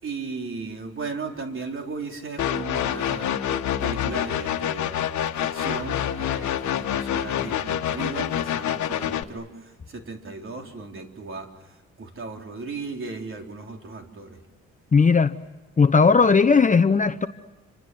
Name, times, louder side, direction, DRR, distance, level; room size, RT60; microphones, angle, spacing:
voice 1, 0.0-5.0 5.4-11.5 12.0-14.4, right 4 dB, 45° right, 3 dB, 4.1 m, -36 dB
sound 1, 2.4-9.2, left 10 dB, 70° left, 1.4 m, -27 dB
voice 2, 14.9-15.3 15.8-17.3, left 5 dB, 25° left, 8 dB, 0.9 m, -17 dB
29.0 x 25.5 x 7.9 m, 1.2 s
cardioid pair, 90°, 30 cm